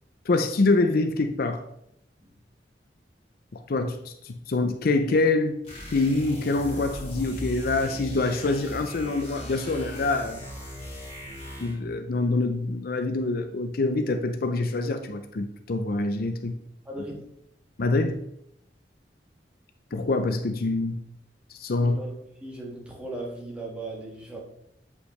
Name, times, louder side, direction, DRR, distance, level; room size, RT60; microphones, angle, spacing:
voice 1, 0.3-1.6 3.5-5.5 5.9-10.4 11.6-16.6 17.8-18.2 19.9-21.0 21.5-22.0, left 3 dB, 60° left, 8 dB, 0.5 m, -25 dB
sound 1, 5.6-11.9, equal, 35° left, 2.2 m, -39 dB
voice 2, 16.9-17.3 21.8-22.1 22.4-24.4, right 2 dB, 5° right, -2 dB, 1.8 m, -37 dB
8.2 x 5.4 x 3.2 m, 0.76 s
head